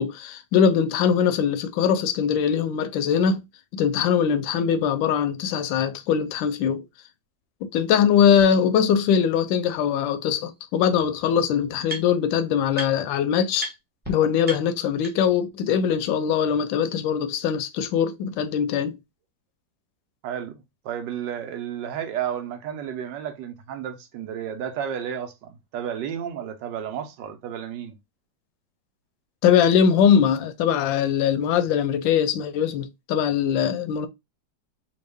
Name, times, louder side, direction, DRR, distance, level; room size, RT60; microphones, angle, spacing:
voice 1, 0.0-3.4 3.7-6.8 7.6-13.7 14.1-19.0 29.4-34.1, left 8 dB, 85° left, 1.3 m, -22 dB
sound 1, 8.4-8.5 9.1-9.2 10.5-10.6 10.8-12.3 12.7-13.2 13.6-13.7 14.0-14.1 14.4-15.4, right 1 dB, 5° right, 0.9 m, -36 dB
voice 2, 20.2-28.0, right 9 dB, 75° right, 1.3 m, -32 dB
3.6 x 2.3 x 3.3 m
omnidirectional pair, 2.0 m